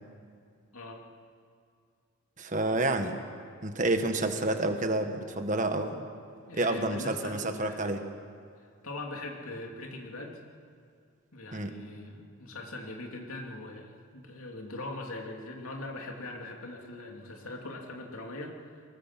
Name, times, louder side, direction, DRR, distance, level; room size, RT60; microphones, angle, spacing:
voice 1, 2.4-3.2 3.6-6.0 6.5-8.0 11.5-11.7, right 2 dB, 35° right, 6 dB, 1.5 m, -29 dB
voice 2, 6.5-7.9 8.8-10.3 11.3-18.8, left 2 dB, 80° left, 1 dB, 2.9 m, -41 dB
23.0 x 19.5 x 7.5 m, 2.3 s
head